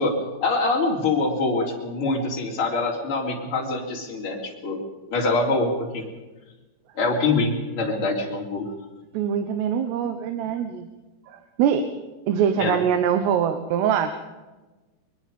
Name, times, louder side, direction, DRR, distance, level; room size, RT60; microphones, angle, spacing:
voice 1, 0.0-4.8 5.1-6.1 7.0-8.7 12.6-12.8, left 3 dB, 35° left, -1 dB, 4.1 m, -24 dB
voice 2, 9.1-10.9 11.3-11.9 12.3-14.1, right 8 dB, 85° right, 8 dB, 3.2 m, -23 dB
22.0 x 22.0 x 5.4 m, 1.2 s
omnidirectional pair, 4.7 m